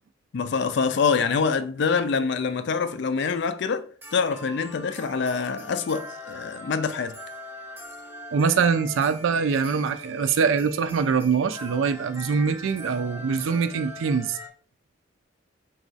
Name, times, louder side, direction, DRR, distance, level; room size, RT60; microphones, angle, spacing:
voice 1, 0.3-7.2, left 5 dB, 55° left, 0.4 m, -25 dB
sound 1, 1.8-2.4 4.0-14.5, left 1 dB, 10° right, 0.6 m, -42 dB
voice 2, 8.3-14.4, right 5 dB, 75° right, 0.4 m, -23 dB
3.9 x 2.4 x 3.9 m
head